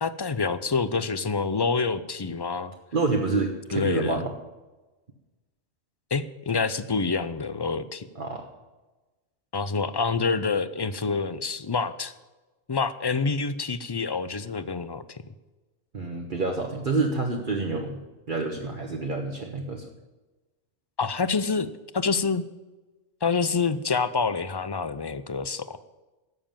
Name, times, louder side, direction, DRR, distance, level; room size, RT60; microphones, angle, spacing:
voice 1, 0.0-2.7 3.7-4.2 6.1-8.0 9.5-12.1 12.7-15.2 21.0-21.7 21.9-22.4 23.2-25.8, left 4 dB, 35° left, 14 dB, 0.4 m, -27 dB
voice 2, 2.9-4.3 8.2-8.5 15.9-18.0 18.3-19.9, right 3 dB, 45° right, 1 dB, 1.3 m, -28 dB
12.5 x 7.4 x 8.9 m, 1.2 s
omnidirectional pair, 1.2 m